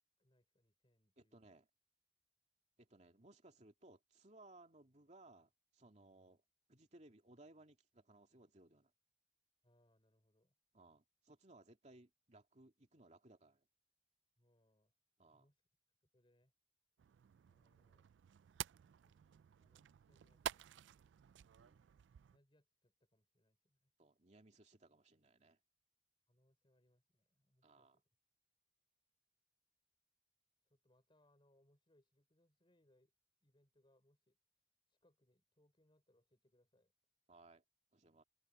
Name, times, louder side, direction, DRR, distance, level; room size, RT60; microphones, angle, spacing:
voice 1, 0.2-1.6 9.6-10.5 14.4-14.9 15.3-15.6 16.0-16.5 17.5-18.1 18.8-19.2 19.6-20.7 22.3-23.9 26.3-28.0 30.6-33.1 33.4-34.6 34.9-36.9, left 1 dB, 30° left, 4.1 m, -77 dB
voice 2, 1.2-1.7 2.8-6.4 6.7-8.9 10.7-13.7 15.2-15.5 21.6-21.8 24.0-25.6 27.6-28.0 37.3-37.6 37.9-38.2, right 2 dB, 40° right, 2.5 m, -63 dB
sound 1, 17.0-22.4, right 10 dB, 85° right, 0.3 m, -51 dB
head